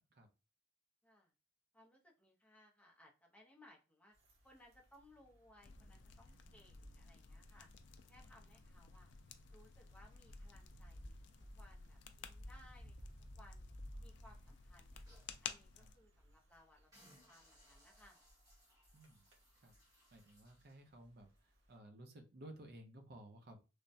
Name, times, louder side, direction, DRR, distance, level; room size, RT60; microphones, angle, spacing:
voice 1, 1.7-4.1 4.4-7.7 8.1-9.1 9.5-11.1 11.5-13.0 13.3-13.7 14.0-15.0 15.4-18.2, left 1 dB, 10° left, -1 dB, 0.5 m, -65 dB
sound 1, 4.1-21.8, equal, 90° right, 0.8 m, -59 dB
sound 2, 5.6-16.0, left 7 dB, 65° left, 0.3 m, -55 dB
voice 2, 13.9-14.5 15.8-15.9 18.9-19.3 19.6-19.7 20.1-23.6, right 1 dB, 55° right, 5 dB, 0.6 m, -57 dB
sound 3, 14.5-15.4 15.9-16.0 16.3-16.6 16.9-20.8 21.4-21.5, equal, 20° right, 0.8 m, -68 dB
3.2 x 2.1 x 2.6 m, 0.30 s
head